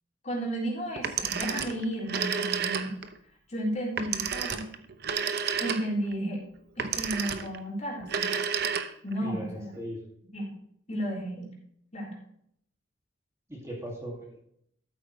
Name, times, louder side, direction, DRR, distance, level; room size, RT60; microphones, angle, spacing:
voice 1, 0.2-3.0 3.5-4.7 5.6-6.4 6.8-8.3 9.0-9.7 10.3-10.5 10.9-11.5 11.9-12.2, right 1 dB, 35° left, -3 dB, 3.8 m, -33 dB
Telephone, 1.0-3.2 4.0-6.1 6.8-7.6 8.0-9.2, right 6 dB, 55° right, 0.8 m, -31 dB
voice 2, 9.2-10.0 13.5-14.4, equal, 15° right, -2 dB, 2.3 m, -38 dB
13.0 x 8.6 x 3.2 m, 0.69 s
head